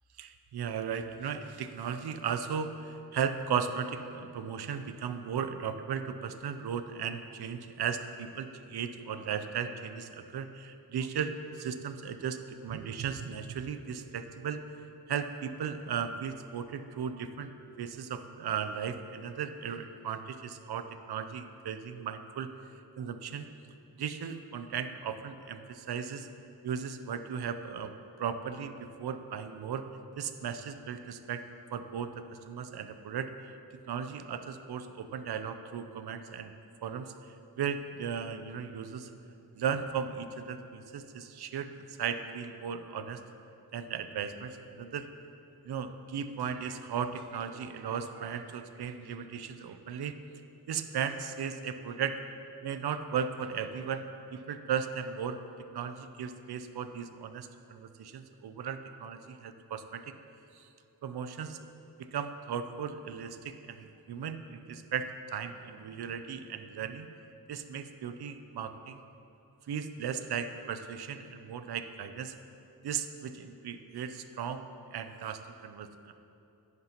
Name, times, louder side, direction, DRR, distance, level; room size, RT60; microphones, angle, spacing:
voice 1, 0.2-14.6 15.1-17.5 17.8-22.5 23.0-23.5 24.0-26.3 26.6-27.9 28.2-29.9 30.2-31.4 31.7-33.5 33.9-36.5 36.8-39.1 39.6-43.2 43.7-45.1 45.6-50.1 50.7-52.2 52.6-54.1 54.3-55.4 55.7-60.0 60.5-60.7 61.0-61.6 62.1-67.1 67.5-69.0 69.7-72.4 72.8-74.6 74.9-76.1, right 7 dB, 70° right, 9 dB, 0.6 m, -36 dB
10.5 x 9.5 x 3.0 m, 2.8 s
wide cardioid pair, 105°, 40 cm